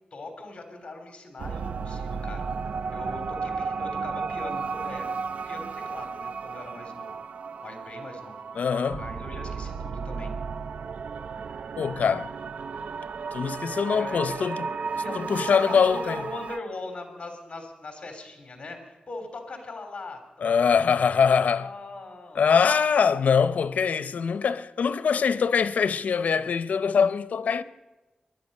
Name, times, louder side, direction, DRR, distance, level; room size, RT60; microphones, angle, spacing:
voice 1, 0.1-2.4 2.9-5.1 5.5-7.2 7.6-8.4 8.9-10.3 12.1-12.3 13.9-20.2 20.5-22.9, left 2 dB, 40° left, 3.3 m, -40 dB
sound 1, 1.4-16.6, right 5 dB, 65° right, 0.4 m, -34 dB
voice 2, 8.6-9.0 11.8-12.3 13.3-14.6 15.1-16.2 20.4-21.7 22.3-27.6, left 6 dB, 85° left, 0.6 m, -23 dB
20.5 x 11.5 x 5.4 m
wide cardioid pair, 140°, 3 cm